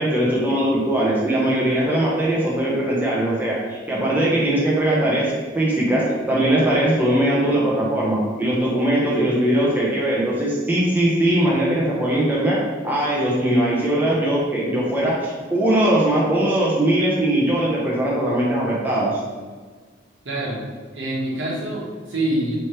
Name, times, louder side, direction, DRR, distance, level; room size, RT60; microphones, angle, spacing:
voice 1, 0.0-5.3 5.5-12.6 12.8-19.2, right 1 dB, 10° right, -6 dB, 0.7 m, -20 dB
voice 2, 20.2-20.6 20.9-22.6, right 1 dB, 85° right, -5 dB, 1.1 m, -25 dB
3.2 x 3.1 x 4.3 m, 1.5 s
head